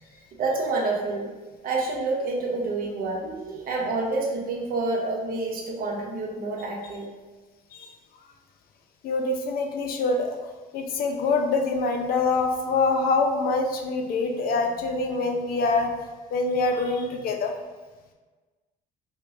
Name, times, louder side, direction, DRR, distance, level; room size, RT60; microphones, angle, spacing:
voice 1, 0.4-1.3 1.6-7.0, right 3 dB, 60° right, -1 dB, 0.8 m, -28 dB
voice 2, 9.0-10.4 10.7-15.9 16.3-17.5, left 3 dB, 60° left, 4 dB, 0.5 m, -25 dB
4.8 x 2.2 x 2.6 m, 1.3 s
cardioid pair, 110°, 17 cm